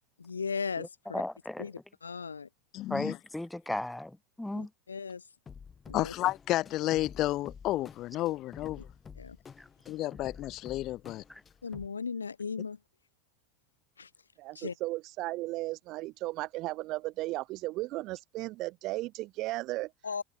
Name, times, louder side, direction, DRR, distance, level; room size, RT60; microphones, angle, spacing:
voice 1, 0.2-1.2 1.6-2.5 4.5-5.2 5.9-6.1 9.2-9.4 11.6-12.8 14.0-14.1 14.5-14.7 20.0-20.2, left 5 dB, 85° left, 2.5 m, -37 dB
voice 2, 1.1-1.6 2.9-4.1 4.4-4.7, left 1 dB, 5° left, 0.5 m, -35 dB
voice 3, 2.7-3.2 5.9-8.9 9.9-11.2, left 16 dB, 45° left, 0.9 m, -31 dB
sound 1, 5.5-11.9, left 6 dB, 25° left, 3.8 m, -50 dB
voice 4, 14.4-19.9, right 19 dB, 50° right, 0.5 m, -35 dB
figure-of-eight pair, 80°, 0 cm